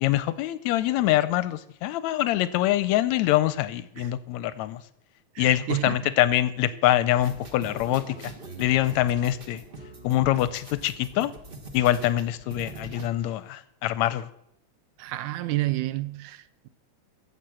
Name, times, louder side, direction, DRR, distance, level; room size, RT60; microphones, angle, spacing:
voice 1, 0.0-4.8 5.4-8.3 8.6-9.6 10.0-11.3 11.7-14.3, left 14 dB, 80° left, 1.8 m, -24 dB
voice 2, 5.4-6.0 6.7-6.8 12.0-12.1 15.0-16.7, right 17 dB, 85° right, 2.1 m, -30 dB
sound 1, 7.2-13.1, right 2 dB, 45° right, 0.6 m, -43 dB
12.5 x 7.5 x 7.5 m
omnidirectional pair, 3.4 m